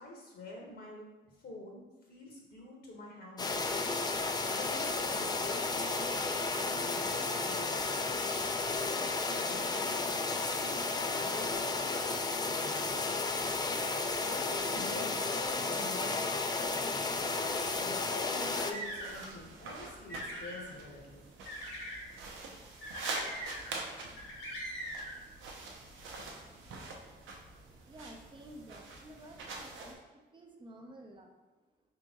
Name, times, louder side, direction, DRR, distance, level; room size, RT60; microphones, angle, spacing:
voice 1, 0.0-7.9 8.7-9.8 10.5-13.2 13.7-16.4 17.2-21.2, left 2 dB, 55° left, -1 dB, 0.9 m, -47 dB
sound 1, 3.4-18.7, left 3 dB, 20° left, 0.4 m, -33 dB
sound 2, 18.3-19.3 19.8-20.7 21.5-22.0 22.8-23.8 24.2-25.1, equal, 90° left, 1.2 m, -42 dB
sound 3, 18.8-29.9, right 3 dB, 80° right, 0.7 m, -45 dB
voice 2, 27.8-31.3, right 1 dB, 25° right, 2 dB, 0.7 m, -52 dB
3.9 x 3.0 x 3.5 m, 1.1 s
cardioid pair, 90°, 20 cm